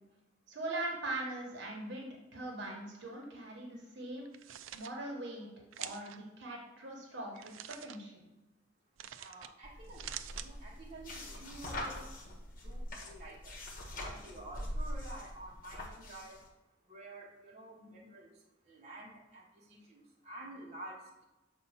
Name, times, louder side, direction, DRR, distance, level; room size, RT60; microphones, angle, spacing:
voice 1, 0.5-4.3 4.7-5.5 5.8-8.3, right 2 dB, 60° right, -1 dB, 1.3 m, -41 dB
sound 1, 4.3-4.9 5.7-6.2 7.4-8.0 9.0-9.5 9.8-10.5, right 11 dB, 90° right, 0.4 m, -45 dB
voice 2, 9.2-12.0 12.6-13.6 14.0-16.4 16.8-21.2, right 1 dB, 35° right, -5 dB, 1.3 m, -50 dB
sound 2, 9.6-16.4, left 1 dB, 45° left, 1.2 m, -43 dB
6.7 x 2.7 x 5.6 m, 1.0 s
head